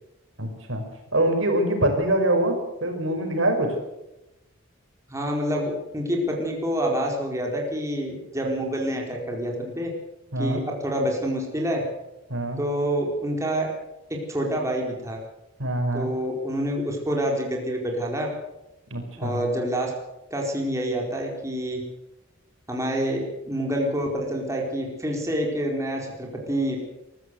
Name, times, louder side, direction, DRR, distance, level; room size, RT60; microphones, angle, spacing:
voice 1, 0.4-0.8 1.1-3.7 10.3-10.6 12.3-12.6 15.6-16.1 18.9-19.4, right 1 dB, 75° right, 4 dB, 5.4 m, -24 dB
voice 2, 5.1-9.9 10.4-11.8 12.6-13.7 14.1-15.2 15.9-18.3 19.2-19.9 20.3-21.8 22.7-26.8, equal, 15° right, 0 dB, 4.4 m, -27 dB
23.5 x 14.5 x 8.1 m, 0.94 s
head